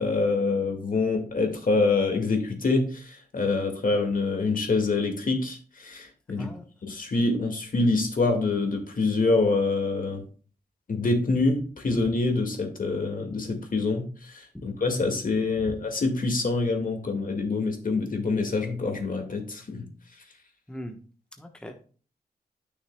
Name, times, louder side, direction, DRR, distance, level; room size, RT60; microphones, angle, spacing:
voice 1, 0.0-6.5 6.8-10.2 10.9-19.9, left 3 dB, 55° left, 3 dB, 2.0 m, -26 dB
voice 2, 21.4-21.9, equal, 5° left, 5 dB, 1.1 m, -39 dB
9.5 x 6.3 x 2.3 m, 0.40 s
cardioid pair, 45°, 17 cm